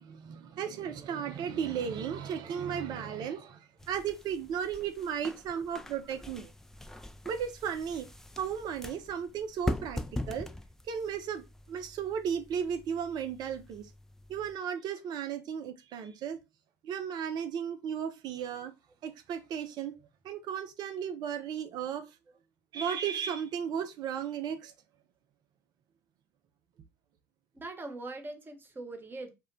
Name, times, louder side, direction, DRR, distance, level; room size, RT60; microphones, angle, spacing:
voice 1, 0.0-6.5 7.2-8.1 8.4-10.0 10.3-10.5 10.9-13.9 14.3-16.4 16.8-18.7 19.0-19.9 20.2-22.1 22.7-24.7, right 8 dB, 50° right, 0.5 m, -35 dB
sound 1, 3.8-14.6, left 1 dB, 5° left, 0.3 m, -42 dB
voice 2, 27.5-29.3, right 2 dB, 25° right, 0.8 m, -42 dB
2.2 x 2.1 x 3.7 m
hypercardioid pair, 60°, 9 cm